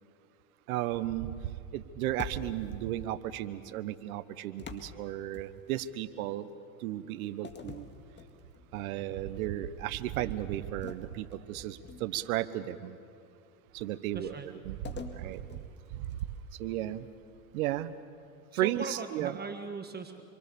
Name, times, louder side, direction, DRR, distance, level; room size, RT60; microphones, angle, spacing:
voice 1, 0.7-1.3 1.7-6.5 6.8-7.9 8.7-13.0 13.7-14.8 15.1-15.4 15.9-16.1 16.6-17.1 17.5-17.9 18.5-19.3, right 13 dB, 70° right, 13 dB, 1.3 m, -34 dB
sound 1, 2.2-2.8 4.6-5.9 7.4-8.8 9.2-9.5 10.8-12.3 14.8-16.5, left 5 dB, 25° left, 2.0 m, -46 dB
voice 2, 14.1-14.5 18.5-20.2, right 4 dB, 20° right, 6 dB, 1.6 m, -39 dB
26.5 x 24.0 x 7.0 m, 2.5 s
hypercardioid pair, 105°, 45 cm